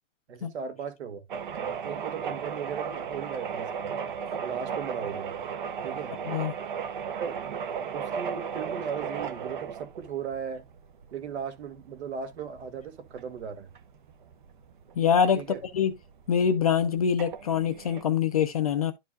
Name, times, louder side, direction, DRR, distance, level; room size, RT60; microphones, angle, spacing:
voice 1, 0.3-1.2 1.8-3.9 4.4-5.4 5.8-6.2 7.2-7.4 7.9-10.7 11.1-13.7 15.3-15.6, right 7 dB, 60° right, 2.0 m, -37 dB
sound 1, 1.3-18.0, right 7 dB, 40° right, 0.9 m, -36 dB
voice 2, 15.0-15.4 15.7-15.9 16.3-18.9, left 7 dB, 30° left, 0.5 m, -24 dB
11.5 x 4.7 x 2.4 m
hypercardioid pair, 175°, 37 cm